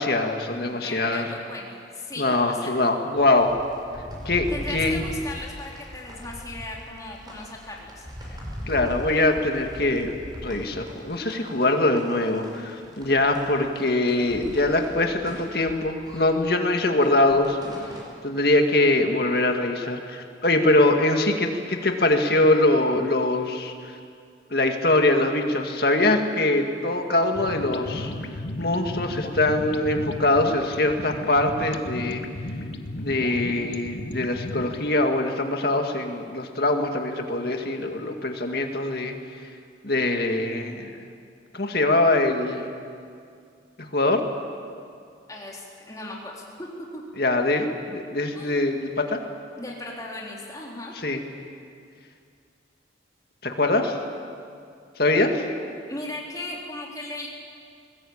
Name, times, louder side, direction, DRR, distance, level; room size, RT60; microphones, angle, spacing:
voice 1, 0.0-1.3 2.2-3.5 4.3-5.0 8.7-10.1 10.4-17.6 18.2-23.7 24.5-28.1 28.6-32.2 33.0-39.2 39.8-41.0 41.5-42.7 43.8-44.2 47.2-49.2 51.0-51.2 53.4-54.0 55.0-55.4, left 2 dB, 55° left, 4 dB, 2.1 m, -23 dB
voice 2, 0.5-2.7 4.5-8.1 45.3-46.7 46.9-47.0 48.3-48.8 49.6-50.9 55.9-57.3, left 2 dB, 20° left, -3 dB, 3.4 m, -37 dB
sound 1, 3.2-18.1, equal, 20° right, 5.6 m, -40 dB
sound 2, 27.2-34.9, left 1 dB, 70° left, 1.2 m, -35 dB
21.5 x 20.0 x 8.8 m, 2.3 s
head